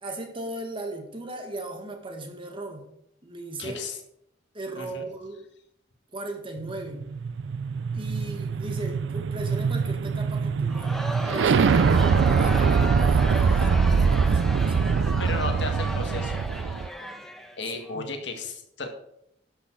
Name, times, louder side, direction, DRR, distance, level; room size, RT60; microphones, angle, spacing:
voice 1, 0.0-2.9 3.2-3.8 4.5-5.4 6.1-7.1 7.9-15.4 17.6-18.1, right 2 dB, 30° right, 4 dB, 1.8 m, -37 dB
voice 2, 3.6-4.0 4.8-5.0 15.2-16.4 17.6-18.9, left 3 dB, 65° left, 5 dB, 1.9 m, -34 dB
sound 1, 6.7-16.9, right 5 dB, 70° right, 0.4 m, -23 dB
Crowd, 10.7-17.9, equal, ahead, 0.9 m, -35 dB
11.5 x 6.2 x 6.5 m, 0.76 s
head